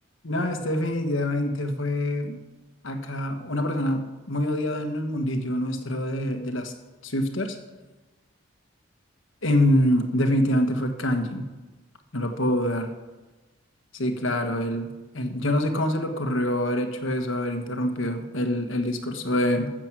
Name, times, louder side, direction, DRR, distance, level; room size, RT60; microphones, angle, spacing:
voice 1, 0.2-2.4 2.8-6.7 7.0-7.5 9.4-11.4 12.1-12.9 13.9-19.7, left 1 dB, 70° left, 6 dB, 1.4 m, -25 dB
15.0 x 7.7 x 6.1 m, 1.2 s
head